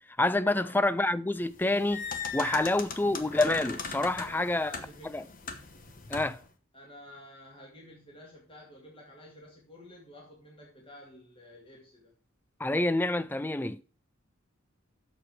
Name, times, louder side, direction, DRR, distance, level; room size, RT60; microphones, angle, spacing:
voice 1, 0.2-2.1 2.3-4.7 5.1-5.2 6.1-6.4 12.6-13.8, left 2 dB, 10° left, 0.3 m, -27 dB
sound 1, 1.5-6.5, left 4 dB, 40° left, 1.1 m, -39 dB
voice 2, 4.2-5.3 6.7-12.1, left 1 dB, 25° left, 2.2 m, -51 dB
7.8 x 6.6 x 5.6 m
head